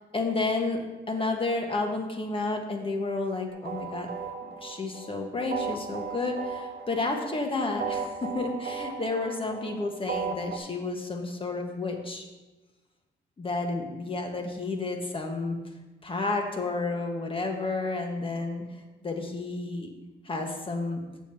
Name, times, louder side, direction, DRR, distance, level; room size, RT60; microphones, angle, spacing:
voice 1, 0.1-4.1 4.4-12.3 13.4-15.6 16.0-19.9 20.2-21.0, left 3 dB, 25° left, 2 dB, 1.4 m, -31 dB
sound 1, 3.5-10.6, right 6 dB, 55° right, 1.1 m, -36 dB
7.6 x 7.0 x 4.5 m, 1.1 s
cardioid pair, 90°, 20 cm